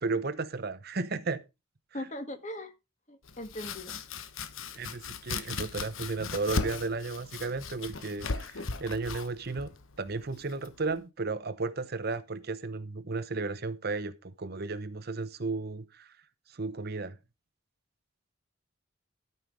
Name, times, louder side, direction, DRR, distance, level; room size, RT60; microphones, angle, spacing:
voice 1, 0.0-1.4 1.9-2.1 4.7-9.7 10.0-16.1 16.5-17.2, right 3 dB, 50° right, 0.8 m, -34 dB
voice 2, 1.9-2.7 3.1-4.0, left 1 dB, 35° left, 1.6 m, -39 dB
Domestic sounds home sounds, 3.2-11.0, left 4 dB, 70° left, 1.0 m, -38 dB
13.0 x 5.7 x 4.7 m
head